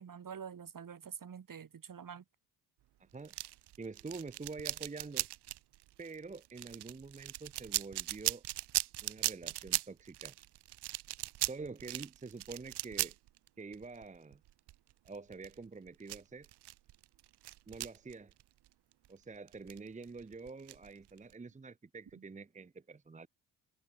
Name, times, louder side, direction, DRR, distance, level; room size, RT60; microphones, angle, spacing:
voice 1, 0.0-2.2 22.1-22.2, right 7 dB, 50° right, 4.1 m, -47 dB
voice 2, 3.0-3.3 3.8-5.3 6.0-8.4 9.0-10.3 11.5-13.2 13.6-14.4 15.0-16.5 17.7-18.3 19.1-23.3, right 4 dB, 15° right, 0.9 m, -47 dB
sound 1, 3.2-19.1 19.5-21.3, right 15 dB, 65° right, 1.1 m, -39 dB
hypercardioid pair, 55°, 43 cm